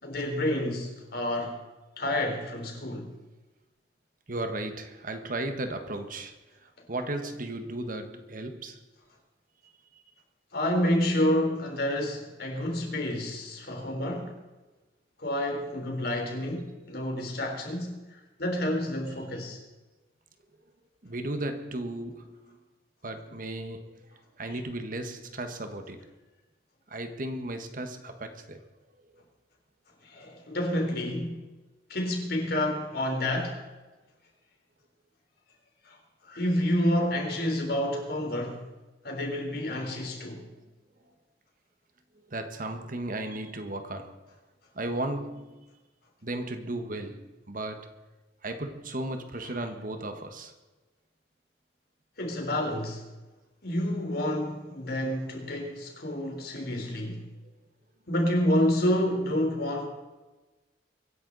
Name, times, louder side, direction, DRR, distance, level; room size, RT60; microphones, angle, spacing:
voice 1, 0.0-1.6 2.0-3.1 10.5-14.4 15.2-19.6 24.5-24.6 30.0-31.4 31.9-33.6 35.8-36.0 36.2-38.6 39.0-40.4 52.2-53.0 53.6-57.2 58.1-59.9, left 1 dB, 60° left, 3.8 m, -29 dB
voice 2, 4.3-6.3 6.6-8.8 9.9-10.0 21.0-22.6 23.0-24.1 24.4-26.1 26.9-28.6 42.3-44.2 44.7-45.6 46.2-48.0 48.4-50.5, right 1 dB, 50° right, 1.4 m, -35 dB
24.0 x 11.0 x 4.1 m
head